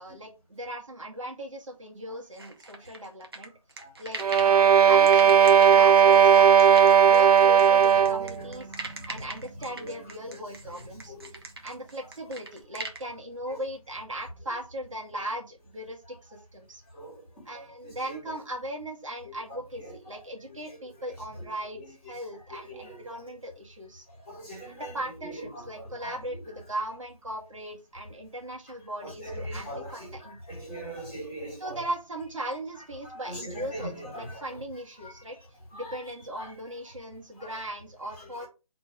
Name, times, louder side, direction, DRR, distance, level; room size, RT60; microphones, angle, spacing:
voice 1, 0.0-3.5 4.0-8.7 9.1-16.8 17.5-24.1 24.7-30.4 31.6-35.4 35.7-38.5, right 1 dB, 60° right, 0 dB, 2.0 m, -38 dB
sound 1, 2.4-4.6 5.1-13.0, right 3 dB, 40° right, 1.1 m, -40 dB
sound 2, 4.2-8.3, right 8 dB, 85° right, 0.4 m, -17 dB
voice 2, 8.8-9.2 9.8-9.9 11.1-11.3 17.0-17.1 17.8-17.9 22.7-23.1 24.3-24.9 26.0-26.1 29.0-30.1 30.5-31.8 33.0-34.2 35.8-36.0, right 1 dB, 15° left, -7 dB, 2.9 m, -40 dB
4.4 x 4.3 x 5.1 m, 0.30 s
figure-of-eight pair, 175°, 19 cm